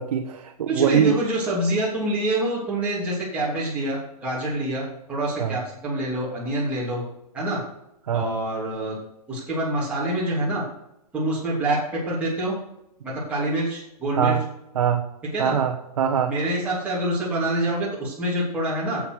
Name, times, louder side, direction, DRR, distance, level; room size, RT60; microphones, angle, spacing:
voice 1, 0.0-1.2 5.4-5.6 8.1-8.2 14.2-14.4 14.7-15.0 15.4-16.3, right 7 dB, 60° right, 4 dB, 1.2 m, -22 dB
voice 2, 0.7-7.0 7.3-7.6 8.1-8.9 9.3-10.6 11.1-12.5 13.0-14.4 15.3-15.6 16.3-19.0, right 1 dB, 5° right, -8 dB, 3.2 m, -26 dB
9.6 x 7.7 x 6.3 m, 0.84 s
hypercardioid pair, 165°, 20 cm